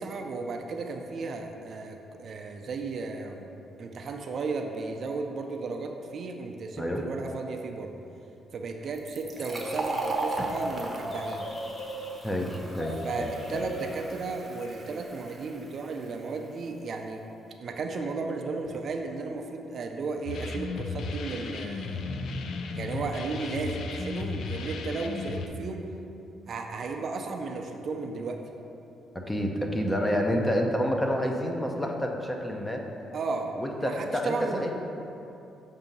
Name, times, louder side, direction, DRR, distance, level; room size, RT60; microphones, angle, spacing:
voice 1, 0.0-3.5 3.8-7.9 8.5-11.5 13.0-17.2 17.6-22.0 22.8-25.8 26.5-28.4 33.1-33.5 33.8-34.7, right 3 dB, 55° right, 3 dB, 0.5 m, -34 dB
Fill (with liquid), 8.9-16.3, right 2 dB, 25° right, 0.8 m, -37 dB
sound 1, 9.4-14.4 14.6-14.8, equal, 45° left, 0.9 m, -38 dB
voice 2, 12.2-13.6 29.1-32.8 33.6-34.7, equal, 10° left, 2 dB, 0.6 m, -29 dB
sound 2, 20.3-25.5, left 3 dB, 65° left, 0.4 m, -35 dB
7.0 x 2.7 x 5.3 m, 2.8 s
cardioid pair, 90°, 0 cm